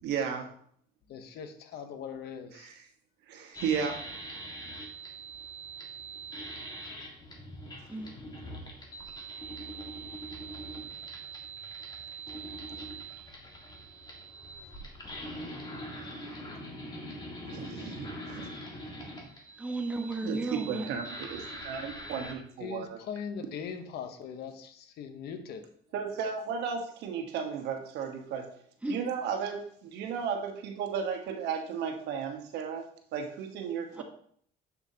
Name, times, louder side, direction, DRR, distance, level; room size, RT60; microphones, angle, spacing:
voice 1, 0.0-0.5 2.5-2.8 3.3-4.0 17.5-18.5 20.2-23.0 25.9-28.5 28.9-32.9 33.1-34.0, right 6 dB, 85° right, 4 dB, 1.2 m, -34 dB
voice 2, 1.1-2.7 22.6-25.6, left 7 dB, 75° left, 8 dB, 0.9 m, -40 dB
sound 1, 3.5-22.3, right 2 dB, 25° left, 1.7 m, -43 dB
voice 3, 19.6-20.9 28.8-29.0 33.9-34.0, right 2 dB, 10° right, 3 dB, 1.1 m, -34 dB
7.2 x 6.9 x 2.8 m, 0.62 s
cardioid pair, 110°, 17 cm